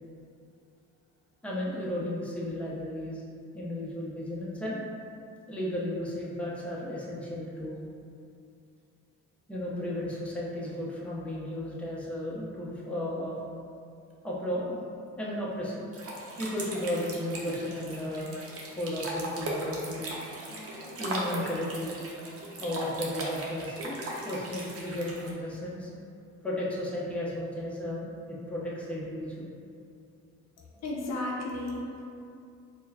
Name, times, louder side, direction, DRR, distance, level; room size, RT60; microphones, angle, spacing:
voice 1, 1.4-3.2 3.5-4.8 5.5-7.8 9.5-13.4 14.2-14.8 15.2-15.9 16.4-18.3 18.8-20.1 21.0-22.0 22.6-24.0 24.2-25.9 26.4-29.4, left 1 dB, 5° left, -6 dB, 0.7 m, -34 dB
sound 1, 15.9-25.3, right 1 dB, 50° right, 0.7 m, -38 dB
voice 2, 30.6-32.1, left 2 dB, 60° left, -2 dB, 0.6 m, -34 dB
4.4 x 2.2 x 2.7 m, 2.5 s
cardioid pair, 90°, 30 cm